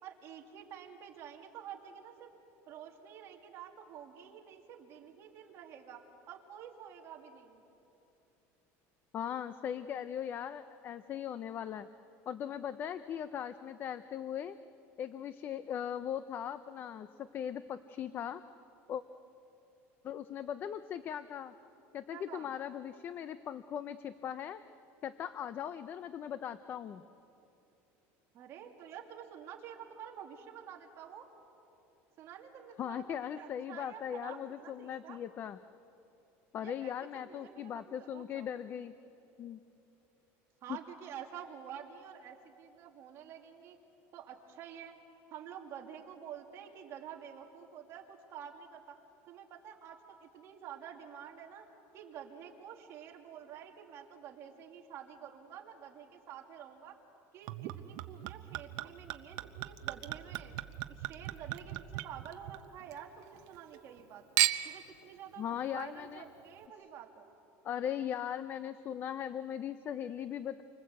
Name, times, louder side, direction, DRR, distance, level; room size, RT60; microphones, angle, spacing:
voice 1, 0.0-2.3 2.7-6.0 6.3-7.6 22.1-22.5 28.3-31.3 32.2-35.2 36.6-38.5 40.6-43.8 44.1-45.0 45.3-49.0 49.3-51.7 51.9-57.0 57.3-60.5 60.9-64.2 64.6-67.3, right 9 dB, 40° right, 2 dB, 2.5 m, -49 dB
voice 2, 9.1-11.9 12.3-14.6 15.0-18.4 18.9-19.0 20.0-21.5 21.9-24.6 25.0-27.0 32.8-35.6 36.5-38.9 39.4-39.6 65.4-66.2 67.6-70.6, left 9 dB, 30° left, 12 dB, 0.6 m, -39 dB
Chink clink / Liquid, 57.5-63.0 63.3-64.0 64.4-64.9 65.6-65.7, right 17 dB, 60° right, 0.9 m, -36 dB
29.5 x 24.5 x 8.1 m, 3.0 s
cardioid pair, 160°, 7 cm